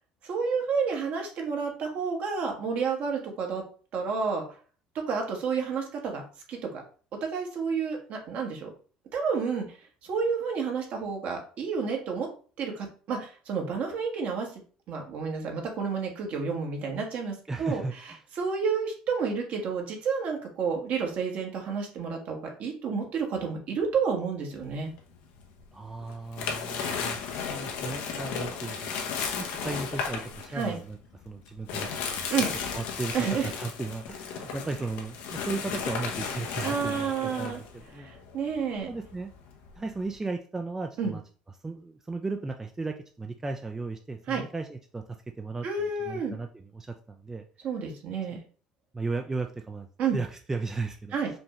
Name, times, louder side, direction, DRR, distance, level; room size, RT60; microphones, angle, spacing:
voice 1, 0.2-3.6 3.9-4.4 4.9-6.2 6.5-6.8 7.2-8.7 9.1-9.8 10.0-12.3 12.6-14.6 14.9-17.8 18.3-24.9 30.5-30.8 32.3-32.5 33.1-33.5 36.6-37.6 37.9-38.9 41.0-41.2 44.3-44.4 45.6-46.3 47.6-48.4 50.0-50.2 51.1-51.3, right 5 dB, 60° right, 2 dB, 1.2 m, -30 dB
voice 2, 17.5-18.2 25.7-27.2 27.5-28.9 29.4-31.0 31.3-32.3 32.7-38.1 38.9-39.3 39.8-41.2 41.6-45.7 46.1-47.5 48.9-49.9 50.1-51.2, right 3 dB, 15° right, 5 dB, 0.4 m, -35 dB
sound 1, 24.6-25.6 26.0-40.1, left 6 dB, 75° left, 0.8 m, -35 dB
5.1 x 2.3 x 3.0 m, 0.40 s
supercardioid pair, 85°, 3 cm